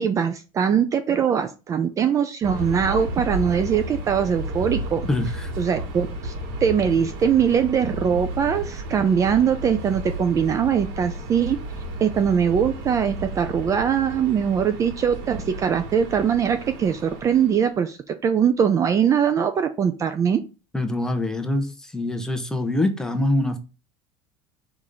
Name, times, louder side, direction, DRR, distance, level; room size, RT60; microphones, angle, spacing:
voice 1, 0.0-5.0 5.6-6.3 6.6-11.6 12.0-20.4, right 7 dB, 30° right, 0.5 m, -22 dB
Subway metro underground, 2.4-17.7, right 1 dB, 90° right, 3.4 m, -33 dB
voice 2, 5.1-5.5 20.7-23.6, left 1 dB, 5° left, 0.9 m, -24 dB
4.9 x 3.6 x 5.4 m
cardioid pair, 135°, 11 cm